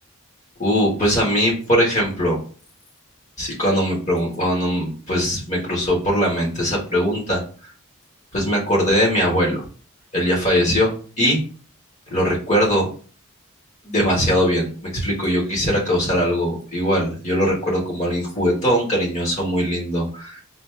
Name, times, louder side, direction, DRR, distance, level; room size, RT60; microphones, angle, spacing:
voice 1, 0.6-2.4 3.4-7.4 8.3-9.6 10.1-11.4 12.1-12.9 13.8-20.4, equal, 35° left, -3 dB, 1.5 m, -21 dB
4.1 x 2.7 x 3.3 m, 0.40 s
head